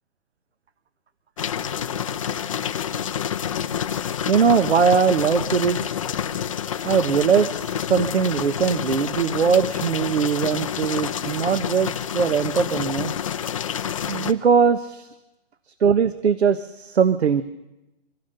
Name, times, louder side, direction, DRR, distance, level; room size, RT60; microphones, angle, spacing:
sound 1, 1.4-14.3, left 8 dB, 30° left, 0.6 m, -28 dB
voice 1, 4.3-6.0 6.8-13.1 14.1-15.1 15.8-17.4, right 6 dB, 85° right, 12 dB, 1.2 m, -20 dB
25.0 x 15.5 x 6.8 m, 0.98 s
hypercardioid pair, 165°, 32 cm